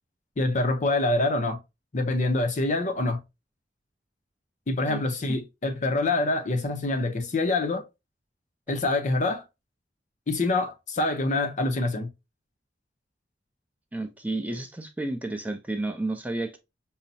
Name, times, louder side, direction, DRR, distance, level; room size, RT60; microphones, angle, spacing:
voice 1, 0.4-1.6 1.9-3.2 4.7-7.8 8.7-9.4 10.3-12.1, left 2 dB, 45° left, 0.6 m, -25 dB
voice 2, 13.9-16.6, right 2 dB, 10° right, 0.4 m, -31 dB
5.5 x 2.0 x 2.6 m
head